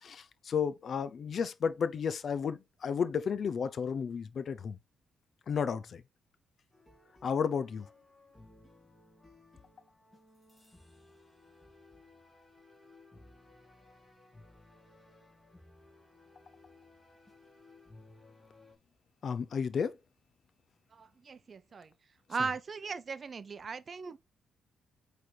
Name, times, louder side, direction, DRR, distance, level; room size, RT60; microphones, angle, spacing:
voice 1, 0.0-4.8 5.5-6.0 7.2-7.9 19.2-19.9, left 6 dB, 50° left, 0.7 m, -32 dB
sound 1, 6.7-18.8, left 2 dB, 10° left, 2.7 m, -59 dB
voice 2, 20.9-21.9 22.3-24.2, right 5 dB, 40° right, 0.6 m, -38 dB
8.5 x 3.4 x 4.0 m
cardioid pair, 90°, 0 cm